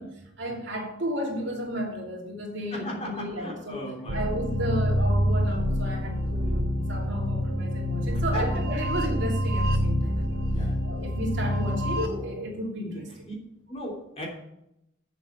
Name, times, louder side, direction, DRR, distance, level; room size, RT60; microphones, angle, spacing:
voice 1, 0.0-10.4 10.8-13.2, equal, 60° right, 2.9 m, -33 dB
voice 2, 2.7-4.2 8.1-8.5 8.8-8.9 10.0-10.8 12.9-13.3 13.7-14.3, equal, 30° left, 3.3 m, -38 dB
sound 1, 4.1-12.1, equal, 75° right, 2.9 m, -26 dB
8.3 x 7.6 x 6.8 m
head